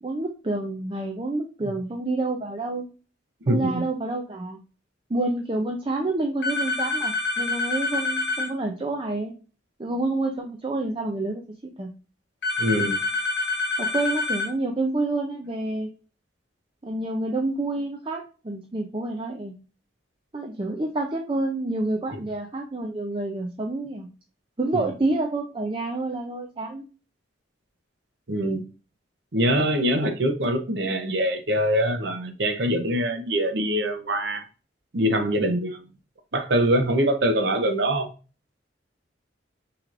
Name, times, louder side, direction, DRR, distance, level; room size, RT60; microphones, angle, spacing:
voice 1, 0.0-2.9 3.5-4.6 5.1-9.3 9.8-11.9 13.8-15.9 16.8-19.5 20.3-24.1 24.6-26.8, right 2 dB, 25° right, 0.5 m, -28 dB
voice 2, 3.5-3.8 12.6-13.0 22.1-22.2 24.7-24.9 28.3-28.6 29.3-34.4 34.9-35.8 36.3-38.1, equal, 60° right, 0.8 m, -23 dB
sound 1, 6.4-8.5 12.4-14.5, left 3 dB, 60° left, 1.7 m, -26 dB
6.0 x 3.1 x 2.5 m
head